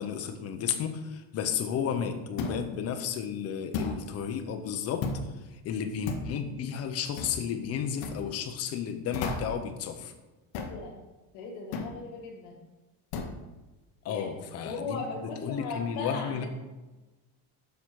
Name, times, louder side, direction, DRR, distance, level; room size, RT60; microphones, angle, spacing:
voice 1, 0.0-5.1 5.5-10.1 14.0-16.5, left 8 dB, 35° left, 7 dB, 0.6 m, -33 dB
sound 1, 2.4-2.7 3.7-4.0 5.0-5.3 6.1-6.3 7.2-7.4 8.0-8.2 9.1-9.6 10.5-10.8 11.7-12.0 13.1-13.4, left 4 dB, 50° left, 1.0 m, -33 dB
voice 2, 10.6-10.9 11.3-12.6 14.1-14.3 14.6-16.5, left 4 dB, 80° left, -2 dB, 2.1 m, -38 dB
7.3 x 5.8 x 4.6 m, 1.1 s
cardioid pair, 175°, 45 cm